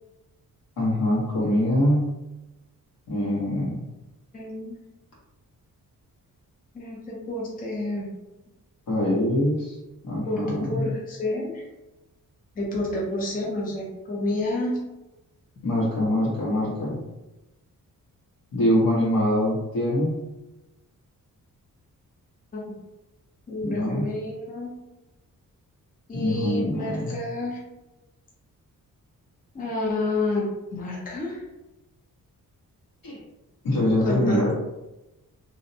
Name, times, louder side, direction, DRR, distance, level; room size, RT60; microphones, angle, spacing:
voice 1, 0.8-2.1 3.1-3.8 8.9-9.7 10.0-10.9 15.6-17.0 18.5-20.1 23.6-24.1 26.1-27.1 33.0-33.2 33.6-34.5, left 1 dB, 85° left, -6 dB, 1.1 m, -24 dB
voice 2, 4.3-4.8 6.7-8.1 10.3-11.6 12.6-14.7 22.5-22.6 23.5-24.7 26.1-27.6 29.5-31.5 34.0-34.4, left 2 dB, 25° left, -3 dB, 0.5 m, -29 dB
2.6 x 2.1 x 2.6 m, 1.0 s
wide cardioid pair, 175°, 34 cm